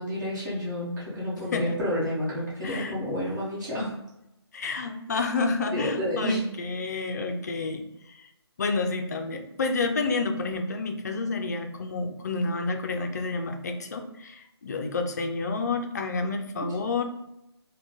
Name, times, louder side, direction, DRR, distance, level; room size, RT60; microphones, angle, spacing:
voice 1, 0.0-3.9 5.1-5.2 5.7-6.4 16.6-16.7, equal, 45° right, -8 dB, 1.4 m, -30 dB
voice 2, 2.6-2.9 3.8-3.9 4.5-8.2 8.6-17.0, left 3 dB, 40° left, 5 dB, 0.4 m, -29 dB
3.6 x 2.2 x 3.8 m, 0.87 s
hypercardioid pair, 165°, 14 cm